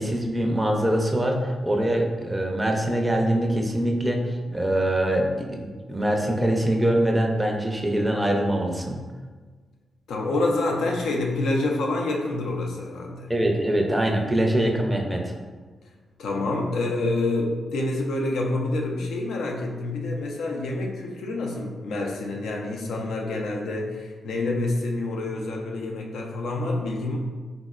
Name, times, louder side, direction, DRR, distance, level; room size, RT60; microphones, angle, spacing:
voice 1, 0.0-9.0 13.3-15.3, right 1 dB, 15° right, 1 dB, 0.4 m, -23 dB
voice 2, 10.1-13.3 16.2-27.2, left 2 dB, 90° left, 0 dB, 0.4 m, -27 dB
3.6 x 2.0 x 2.3 m, 1.4 s
cardioid pair, 90°, 0 cm